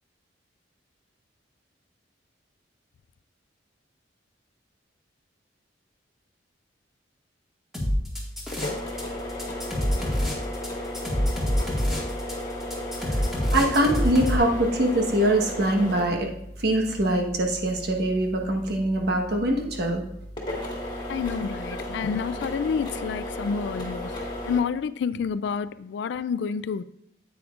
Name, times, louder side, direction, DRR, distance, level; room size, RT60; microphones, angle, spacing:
sound 1, 7.7-9.0 9.3-14.4, equal, ahead, 1.8 m, -26 dB
sound 2, 7.8-24.6, left 1 dB, 25° left, 1.9 m, -35 dB
voice 1, 13.5-16.3 16.6-20.1, right 1 dB, 60° right, 1.2 m, -23 dB
voice 2, 21.1-24.1 24.5-26.8, left 6 dB, 65° left, 0.3 m, -29 dB
9.5 x 8.4 x 2.5 m
head